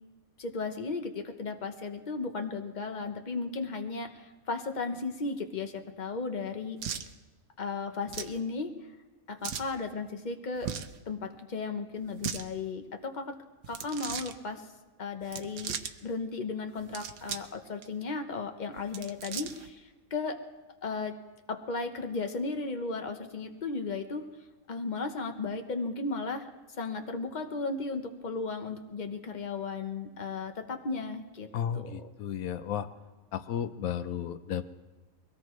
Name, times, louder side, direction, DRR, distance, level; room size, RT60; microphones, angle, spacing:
voice 1, 0.4-6.8 7.6-8.7 9.3-10.7 11.1-13.4 13.7-14.7 15.0-20.4 20.8-21.2 21.5-24.3 24.7-26.5 26.8-31.5 31.7-32.1, left 4 dB, 35° left, 5 dB, 1.1 m, -35 dB
sound 1, 6.8-7.1 8.1-8.4 9.4-9.7 10.6-11.0 12.0-12.4 13.6-14.3 15.2-15.9 16.8-17.5 17.8-17.9 18.8-19.7, right 8 dB, 80° right, 1.2 m, -37 dB
voice 2, 31.5-32.9 33.3-34.7, left 9 dB, 80° left, 10 dB, 1.2 m, -33 dB
22.5 x 17.5 x 3.2 m, 1.2 s
omnidirectional pair, 1.5 m